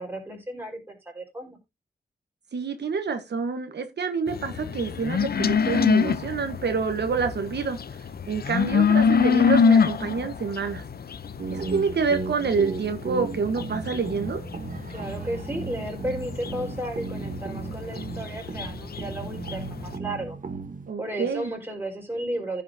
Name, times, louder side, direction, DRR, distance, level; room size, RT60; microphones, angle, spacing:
voice 1, 0.0-1.6 14.9-20.4 21.0-22.6, right 1 dB, 10° right, 4.5 m, -33 dB
voice 2, 2.5-7.8 8.3-10.8 11.5-14.4 20.9-21.5, right 5 dB, 80° right, 1.3 m, -27 dB
sound 1, 4.3-20.0, left 6 dB, 65° left, 0.7 m, -26 dB
sound 2, 11.4-20.9, right 4 dB, 50° right, 1.2 m, -35 dB
15.0 x 5.9 x 2.8 m
wide cardioid pair, 135°, 17 cm